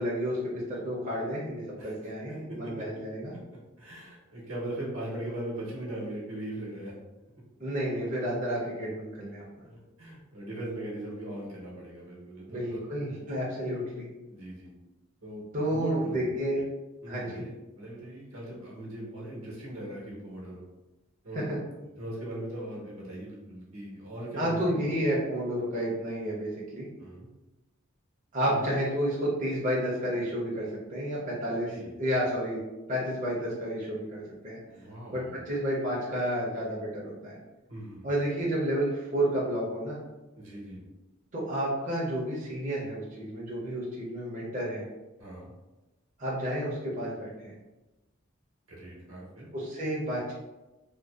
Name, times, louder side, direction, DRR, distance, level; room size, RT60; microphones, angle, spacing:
voice 1, 0.0-3.3 7.6-9.4 12.5-14.1 15.5-16.6 17.1-17.4 21.3-21.6 24.4-26.9 28.3-31.7 32.0-32.6 32.9-34.6 35.1-37.4 38.0-40.0 41.3-44.9 46.2-47.5 49.5-50.3, equal, 40° right, -6 dB, 0.5 m, -31 dB
voice 2, 2.3-2.8 3.3-3.4 3.8-6.9 9.6-12.9 14.3-14.7 15.2-15.4 15.7-16.4 17.0-20.6 21.2-21.5 22.0-24.8 27.0-27.3 28.4-28.7 31.7-31.9 34.7-35.4 37.7-38.1 40.4-40.8 45.2-45.5 48.7-49.5, right 1 dB, 75° right, -5 dB, 0.9 m, -39 dB
2.5 x 2.1 x 2.3 m, 1.1 s
head